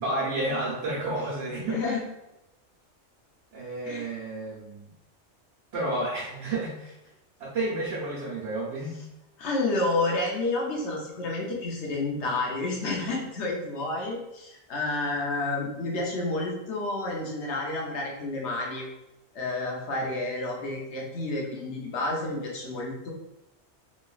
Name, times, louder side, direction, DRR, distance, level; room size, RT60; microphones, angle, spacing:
voice 1, 0.0-1.8 3.5-4.9 5.7-6.9 7.4-9.0, right 2 dB, 85° right, -7 dB, 1.1 m, -31 dB
voice 2, 1.6-2.0 3.8-4.1 9.4-18.9 19.3-23.1, left 2 dB, 75° left, -2 dB, 1.0 m, -30 dB
3.0 x 2.3 x 2.3 m, 0.93 s
omnidirectional pair, 1.2 m